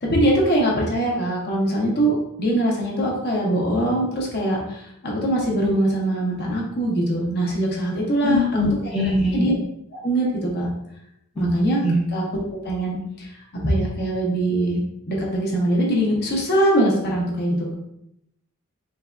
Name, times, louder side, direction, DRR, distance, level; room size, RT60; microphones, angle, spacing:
voice 1, 0.0-8.9 9.3-9.5 9.9-10.7 11.4-11.8 12.1-12.2 12.6-13.3 13.6-14.8 15.1-17.7, right 1 dB, 50° left, -2 dB, 0.6 m, -22 dB
voice 2, 8.2-9.5 11.4-11.5 11.8-12.0, left 1 dB, ahead, -5 dB, 0.6 m, -22 dB
3.3 x 2.1 x 2.3 m, 0.77 s
head